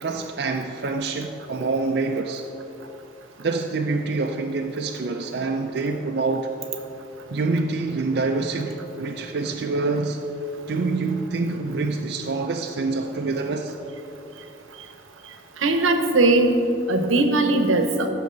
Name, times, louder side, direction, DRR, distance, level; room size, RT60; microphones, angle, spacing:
voice 1, 0.0-2.5 3.4-6.5 7.3-10.2 10.7-13.7, right 3 dB, 55° right, 3 dB, 0.4 m, -26 dB
voice 2, 15.6-16.5 16.9-18.1, right 2 dB, 85° right, 6 dB, 0.9 m, -19 dB
15.0 x 6.2 x 3.9 m, 3.0 s
head